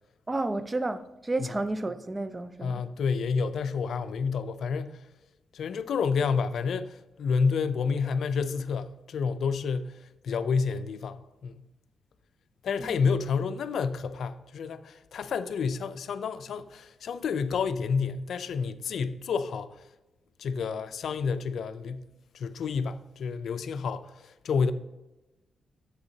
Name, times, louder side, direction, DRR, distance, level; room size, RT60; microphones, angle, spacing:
voice 1, 0.3-2.8 12.8-13.0, right 2 dB, 25° right, 0.5 m, -31 dB
voice 2, 2.6-5.0 5.5-11.6 12.6-19.8 20.4-22.1 22.3-24.7, left 5 dB, 75° left, 0.4 m, -29 dB
8.0 x 7.6 x 2.8 m
cardioid pair, 80°, 0 cm